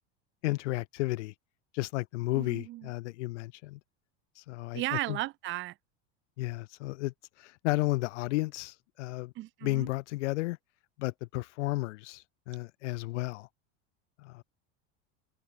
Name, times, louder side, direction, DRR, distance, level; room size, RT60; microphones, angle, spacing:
voice 1, 0.4-1.3 1.7-3.8 4.4-5.2 6.4-9.3 9.6-10.6 11.0-13.5 14.2-14.4, left 20 dB, 75° left, 4.0 m, -33 dB
voice 2, 2.3-2.9 4.7-5.7 9.3-9.9, right 17 dB, 35° right, 1.5 m, -35 dB
supercardioid pair, 165°, 36 cm